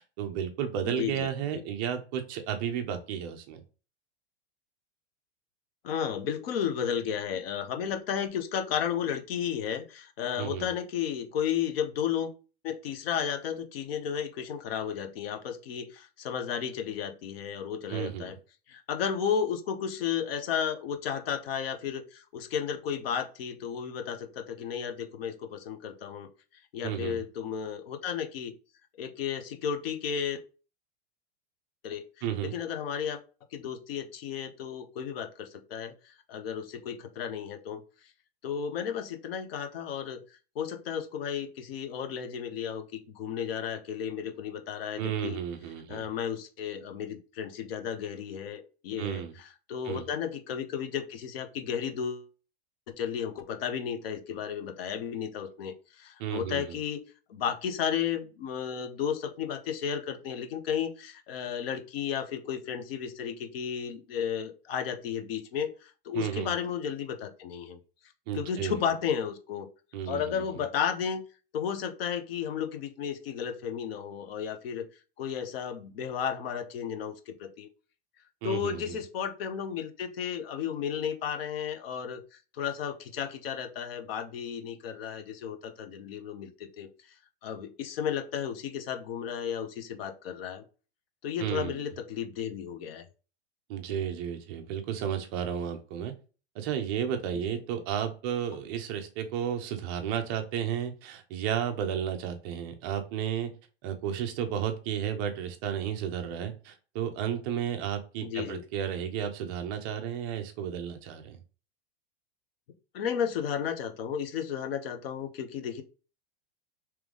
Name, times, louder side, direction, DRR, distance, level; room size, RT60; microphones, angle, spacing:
voice 1, 0.0-3.6 10.4-10.7 17.9-18.4 26.8-27.2 32.2-32.5 45.0-46.1 49.0-49.3 49.8-50.1 56.2-56.8 66.1-66.5 68.3-68.8 69.9-70.4 78.4-79.0 91.4-91.9 93.7-96.1 96.6-103.5 103.8-111.4, right 9 dB, 20° right, 6 dB, 0.3 m, -33 dB
voice 2, 0.8-1.3 1.5-1.6 5.8-12.3 12.6-18.4 18.7-26.3 26.7-28.5 29.0-30.4 31.8-32.0 32.4-33.2 33.5-37.8 38.4-40.2 40.5-45.4 45.9-52.3 53.0-67.8 68.3-69.7 70.1-71.2 71.5-74.9 75.2-77.7 78.4-86.9 87.4-90.6 91.2-93.0 93.9-94.0 97.5-97.6 108.2-108.6 112.9-115.8, left 8 dB, 65° left, 8 dB, 0.8 m, -33 dB
3.4 x 3.0 x 3.6 m, 0.35 s
supercardioid pair, 165°, 32 cm